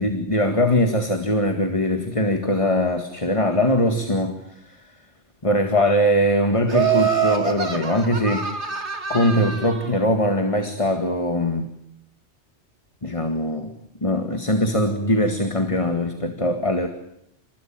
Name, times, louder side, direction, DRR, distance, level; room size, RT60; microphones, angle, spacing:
voice 1, 0.0-4.8 5.4-8.5 9.1-11.7 13.0-13.7 14.0-16.9, left 1 dB, 30° left, 6 dB, 1.9 m, -21 dB
Laughter, 6.7-9.9, right 8 dB, 75° right, 2.7 m, -25 dB
28.5 x 20.5 x 9.0 m, 0.78 s
omnidirectional pair, 1.2 m